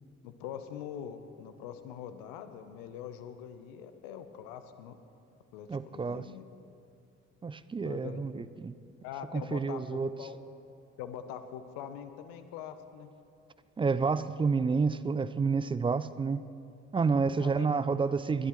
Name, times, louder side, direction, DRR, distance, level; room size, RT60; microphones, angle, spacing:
voice 1, 0.2-5.0 5.5-6.5 7.8-8.5 9.0-10.4 11.0-13.1 17.4-17.7, left 9 dB, 75° left, 10 dB, 0.7 m, -43 dB
voice 2, 5.7-6.2 7.4-8.7 9.3-10.1 13.8-16.4 16.9-18.5, right 4 dB, 15° right, 15 dB, 0.3 m, -29 dB
20.5 x 11.0 x 3.1 m, 2.5 s
hypercardioid pair, 45°, 35 cm